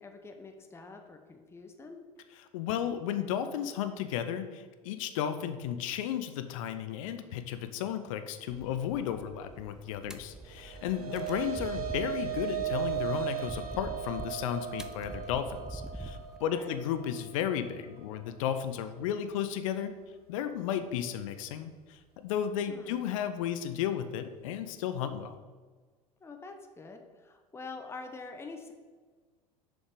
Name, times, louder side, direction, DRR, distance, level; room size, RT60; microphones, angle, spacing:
voice 1, 0.0-2.0 11.1-11.4 16.4-16.8 22.7-23.0 26.2-28.7, left 3 dB, 15° left, 5 dB, 0.8 m, -46 dB
voice 2, 2.5-19.9 20.3-25.4, left 9 dB, 65° left, 10 dB, 0.6 m, -34 dB
sound 1, 8.5-16.4, right 1 dB, 5° right, 0.5 m, -45 dB
sound 2, 10.5-19.0, right 12 dB, 80° right, 0.8 m, -37 dB
6.8 x 5.3 x 5.0 m, 1.4 s
figure-of-eight pair, 70°, 19 cm